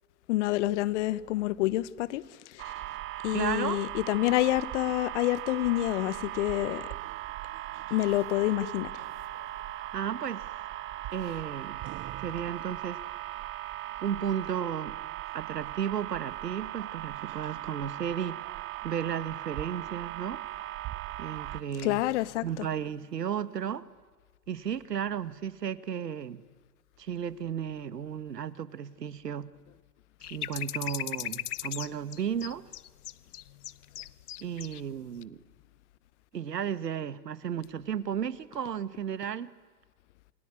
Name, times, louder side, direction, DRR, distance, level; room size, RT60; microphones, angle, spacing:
voice 1, 0.3-2.7 3.2-6.9 7.9-8.9 21.8-22.7, left 16 dB, 45° left, 1.2 m, -28 dB
sound 1, 2.6-21.6, right 16 dB, 25° right, 1.0 m, -38 dB
voice 2, 3.3-3.8 9.9-10.5 11.1-11.8 12.2-13.0 14.0-15.0 15.3-18.5 18.8-20.4 21.2-22.0 22.4-23.9 24.5-26.4 27.0-29.5 30.3-32.6 34.4-35.4 36.3-39.5, right 8 dB, 80° right, 1.5 m, -34 dB
sound 2, 30.2-34.8 35.1-35.2, left 12 dB, 70° left, 1.0 m, -37 dB
28.0 x 22.0 x 9.7 m
hypercardioid pair, 115°, 48 cm